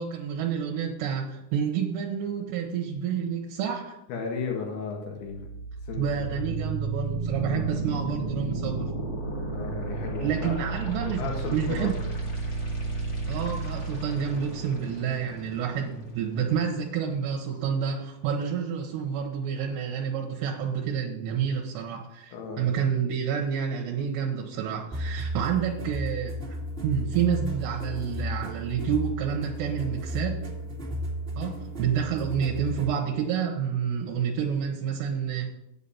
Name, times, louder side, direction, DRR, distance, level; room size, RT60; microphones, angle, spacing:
voice 1, 0.0-4.0 6.0-8.9 10.2-11.9 13.3-26.6 26.8-30.5 31.4-35.5, right 7 dB, 75° right, 0 dB, 2.9 m, -29 dB
voice 2, 4.1-5.5 5.9-6.1 6.3-6.7 7.4-8.3 9.5-10.6 11.0-11.9 22.3-22.7, left 5 dB, 75° left, 0 dB, 4.0 m, -35 dB
sound 1, 5.2-17.2, right 3 dB, 35° left, 1.5 m, -33 dB
sound 2, 24.9-33.0, equal, 25° right, 1.3 m, -34 dB
8.3 x 8.2 x 5.6 m, 0.86 s
omnidirectional pair, 5.3 m